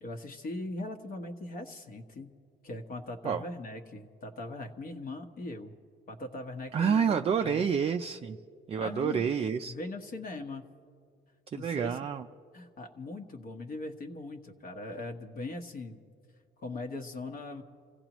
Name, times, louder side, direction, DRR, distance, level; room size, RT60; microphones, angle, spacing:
voice 1, 0.0-2.4 2.6-5.8 6.1-7.6 8.8-9.3 9.7-10.7 11.5-12.0 12.5-16.0 16.6-17.6, left 2 dB, 45° left, 4 dB, 1.2 m, -40 dB
voice 2, 6.7-8.4 8.7-9.7 11.5-12.2, right 7 dB, 30° right, 6 dB, 0.4 m, -28 dB
29.0 x 16.5 x 3.0 m, 2.2 s
cardioid pair, 130°, 20 cm